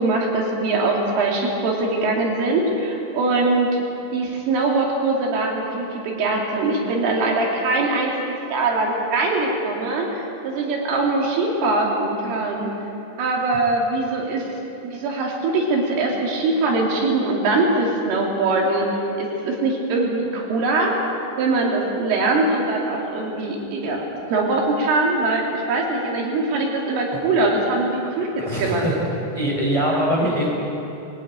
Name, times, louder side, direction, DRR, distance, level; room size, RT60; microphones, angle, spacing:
voice 1, 0.0-3.7 4.1-12.7 13.2-14.5 14.8-18.9 19.2-21.0 21.4-28.9, right 2 dB, 75° right, -1 dB, 5.3 m, -22 dB
voice 2, 28.4-29.0 29.3-30.5, equal, 5° left, -3 dB, 4.8 m, -22 dB
21.0 x 18.0 x 8.8 m, 2.9 s
omnidirectional pair, 5.8 m